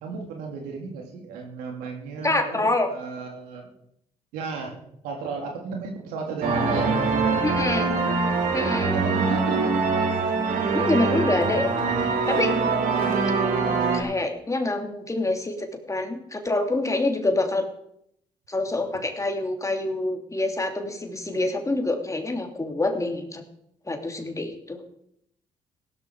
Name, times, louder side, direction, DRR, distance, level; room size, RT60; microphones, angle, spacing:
voice 1, 0.0-3.7 4.3-4.7 5.0-8.0 8.9-9.8, right 4 dB, 90° right, 1 dB, 3.4 m, -34 dB
voice 2, 2.2-2.9 7.4-7.9 8.5-9.0 10.7-11.7 12.3-12.5 13.9-17.7 18.5-23.4 23.9-24.8, left 2 dB, 20° left, 4 dB, 3.0 m, -26 dB
sound 1, 6.4-14.0, right 4 dB, 70° right, 3.2 m, -23 dB
16.5 x 13.0 x 5.0 m, 0.72 s
supercardioid pair, 60°, 14 cm